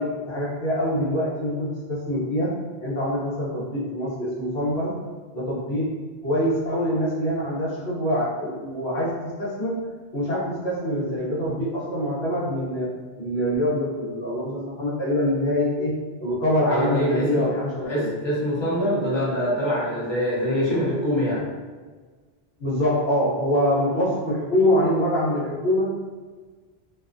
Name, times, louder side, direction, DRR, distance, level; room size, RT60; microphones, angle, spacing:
voice 1, 0.0-5.0 5.3-5.9 6.2-9.8 10.1-12.9 13.2-18.1 22.6-25.9, left 1 dB, 85° left, -7 dB, 1.0 m, -25 dB
voice 2, 16.7-17.4 17.9-21.4, equal, 30° left, -8 dB, 0.7 m, -24 dB
2.5 x 2.1 x 2.4 m, 1.4 s
omnidirectional pair, 1.1 m